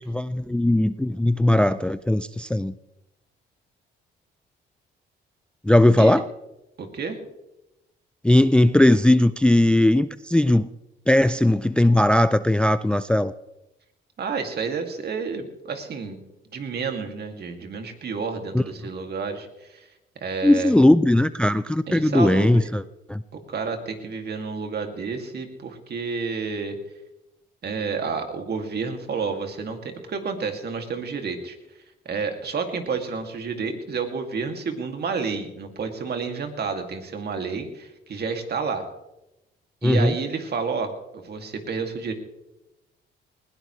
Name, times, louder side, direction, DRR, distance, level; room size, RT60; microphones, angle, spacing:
voice 1, 0.1-2.7 5.6-6.3 8.2-10.7 11.1-13.3 18.5-18.6 20.4-22.8 23.1-23.2 39.8-40.1, left 1 dB, 5° left, 14 dB, 0.4 m, -18 dB
voice 2, 6.8-7.2 14.2-16.2 16.5-19.8 20.2-20.7 21.9-22.7 23.5-26.8 27.6-31.6 32.1-38.8 39.8-42.1, right 5 dB, 55° right, 5 dB, 2.4 m, -30 dB
20.0 x 17.0 x 3.2 m, 0.93 s
cardioid pair, 90°, 20 cm